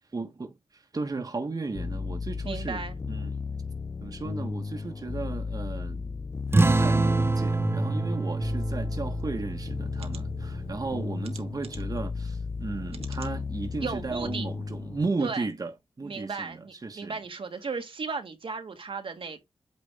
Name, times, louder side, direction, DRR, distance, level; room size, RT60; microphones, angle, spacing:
voice 1, 0.1-2.8 3.1-3.4 4.0-6.1 6.6-15.7 16.0-17.2, right 3 dB, 40° right, 1.2 m, -35 dB
sound 1, 1.7-15.1, left 4 dB, 30° left, 0.3 m, -35 dB
voice 2, 2.4-3.0 13.8-14.5 15.2-15.5 16.0-19.4, right 4 dB, 60° right, 1.4 m, -35 dB
sound 2, 6.5-11.5, right 3 dB, 25° right, 0.5 m, -27 dB
sound 3, 9.2-9.3 9.9-10.2 11.2-12.0 12.9-13.4 13.9-14.0 14.4-14.5, right 6 dB, 80° right, 1.1 m, -48 dB
8.6 x 3.4 x 3.5 m
cardioid pair, 65°, 10 cm